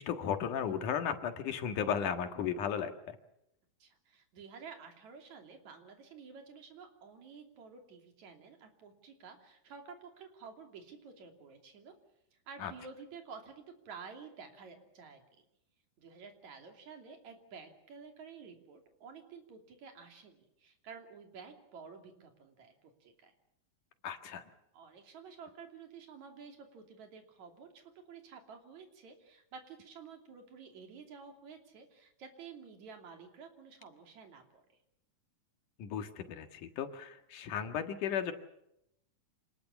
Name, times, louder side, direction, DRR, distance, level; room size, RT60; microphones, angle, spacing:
voice 1, 0.0-3.2 12.6-12.7 24.0-24.4 35.8-38.3, left 8 dB, 85° left, 7 dB, 3.2 m, -35 dB
voice 2, 3.8-11.9 12.3-15.2 16.0-23.3 24.7-34.8, right 5 dB, 65° right, 4 dB, 4.2 m, -51 dB
26.5 x 20.0 x 7.1 m, 0.81 s
omnidirectional pair, 3.5 m